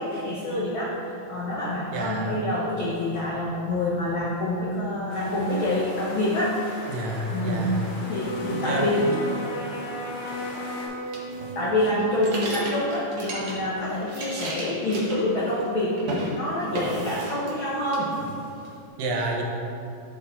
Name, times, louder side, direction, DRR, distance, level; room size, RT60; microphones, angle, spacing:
voice 1, 0.0-6.6 7.3-7.7 8.1-9.0 11.5-16.0 16.3-18.1, left 1 dB, 85° left, -6 dB, 1.1 m, -27 dB
voice 2, 1.9-2.4 6.9-7.9 8.5-9.2 19.0-19.4, right 2 dB, 85° right, 0 dB, 2.6 m, -29 dB
sound 1, 5.1-10.9, left 1 dB, 65° left, 3.0 m, -40 dB
Wind instrument woodwind instrument, 8.0-12.1, right 1 dB, 45° left, 1.8 m, -34 dB
sound 2, 11.1-13.7 14.0-15.7 16.0-16.3 16.7-17.6 17.9-18.7, right 1 dB, 55° right, 1.8 m, -34 dB
11.5 x 4.3 x 4.0 m, 2.5 s
omnidirectional pair, 3.7 m